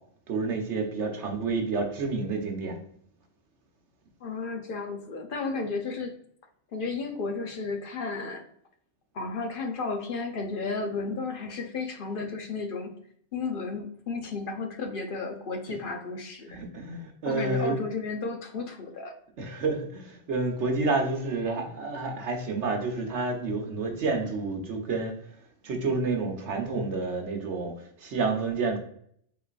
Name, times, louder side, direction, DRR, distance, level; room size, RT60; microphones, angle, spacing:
voice 1, 0.3-2.8 16.5-17.8 19.4-25.1 25.6-28.8, right 3 dB, 75° right, 3 dB, 1.2 m, -29 dB
voice 2, 4.2-6.1 6.7-8.5 9.1-12.9 13.3-16.6 17.3-19.1, left 4 dB, 55° left, 4 dB, 0.8 m, -33 dB
4.2 x 3.8 x 2.4 m, 0.64 s
omnidirectional pair, 1.2 m